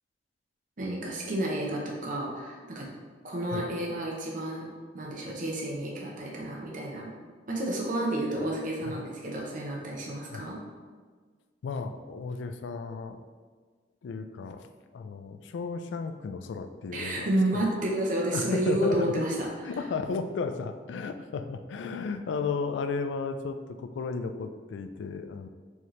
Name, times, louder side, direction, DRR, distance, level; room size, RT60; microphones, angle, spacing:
voice 1, 0.8-2.9 3.2-4.7 4.9-7.1 7.5-10.6 16.9-19.5, right 1 dB, 50° right, -3 dB, 0.7 m, -30 dB
voice 2, 11.6-13.2 14.0-14.7 14.9-17.7 18.3-19.1 19.6-25.5, left 4 dB, 85° left, 8 dB, 0.3 m, -34 dB
4.7 x 2.8 x 3.1 m, 1.5 s
head